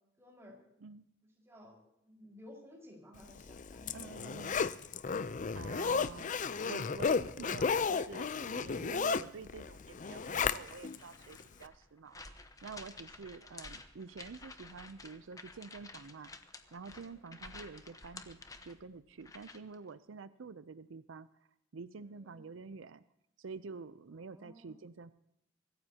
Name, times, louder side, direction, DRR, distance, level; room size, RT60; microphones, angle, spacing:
voice 1, 0.2-0.6 1.4-4.7 13.3-13.4 17.0-17.3 22.1-22.4 24.3-24.8, left 1 dB, 15° right, -2 dB, 4.9 m, -56 dB
Zipper (clothing), 3.4-11.0 11.4-11.5, left 5 dB, 40° left, 0.5 m, -34 dB
voice 2, 3.9-4.6 5.5-16.3 16.7-21.3 21.7-23.0 23.4-25.1, right 4 dB, 85° right, 14 dB, 0.6 m, -48 dB
sound 1, 10.2-19.8, left 3 dB, 20° left, 1.0 m, -52 dB
25.0 x 14.5 x 2.9 m, 0.80 s
head